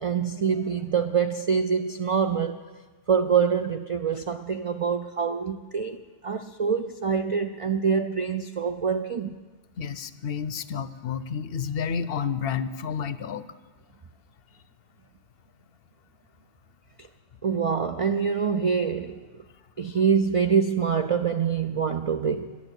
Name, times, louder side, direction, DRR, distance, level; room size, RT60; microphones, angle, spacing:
voice 1, 0.0-2.6 3.1-9.4 17.4-19.2 19.8-22.6, right 6 dB, 60° right, 0.3 m, -25 dB
voice 2, 9.8-13.4, left 7 dB, 65° left, 0.8 m, -30 dB
11.5 x 11.0 x 8.0 m
omnidirectional pair, 1.1 m